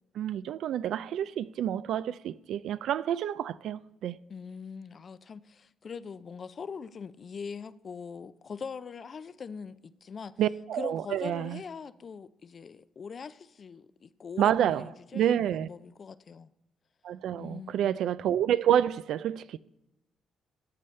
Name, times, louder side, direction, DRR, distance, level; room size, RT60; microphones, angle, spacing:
voice 1, 0.2-4.2 10.4-11.6 14.4-14.9 15.1-15.7 17.0-19.6, right 10 dB, 75° right, 0.3 m, -28 dB
voice 2, 4.3-10.3 10.7-16.5 17.4-18.0, left 5 dB, 45° left, 0.4 m, -42 dB
14.5 x 8.5 x 3.2 m
cardioid pair, 90°, 0 cm